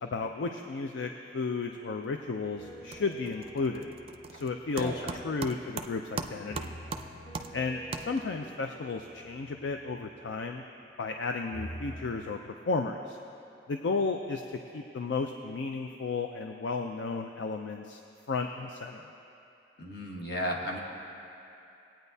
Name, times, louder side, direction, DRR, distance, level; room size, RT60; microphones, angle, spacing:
voice 1, 0.0-3.9 4.3-6.7 7.5-10.6 11.0-13.2 13.7-14.4 14.7-18.0 18.3-19.1, left 4 dB, 80° left, 4 dB, 0.4 m, -33 dB
sound 1, 2.0-2.4 2.7-8.5, right 4 dB, 35° right, 0.4 m, -41 dB
sound 2, 2.6-5.9 6.5-11.1 11.5-12.2, right 1 dB, 25° left, 0.7 m, -47 dB
voice 2, 4.8-5.1 19.8-20.8, equal, 60° left, -1 dB, 1.4 m, -34 dB
19.5 x 8.9 x 2.7 m, 2.8 s
head